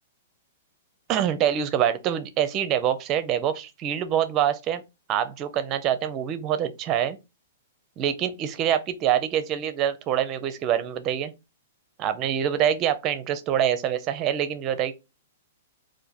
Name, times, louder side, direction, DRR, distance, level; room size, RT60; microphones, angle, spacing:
voice 1, 1.1-4.8 5.1-7.2 8.0-11.3 12.0-14.9, right 10 dB, 25° right, 0.5 m, -25 dB
3.7 x 2.6 x 4.2 m
hypercardioid pair, 155°, 0 cm